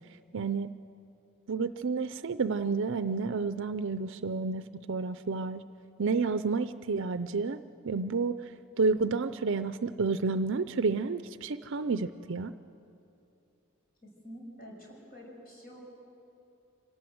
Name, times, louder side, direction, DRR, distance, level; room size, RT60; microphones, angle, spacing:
voice 1, 0.3-0.7 1.5-5.6 6.0-8.5 8.8-12.5, right 4 dB, 65° right, 12 dB, 0.5 m, -30 dB
voice 2, 14.0-15.8, equal, 45° left, -1 dB, 6.0 m, -48 dB
26.0 x 18.0 x 7.9 m, 2.8 s
head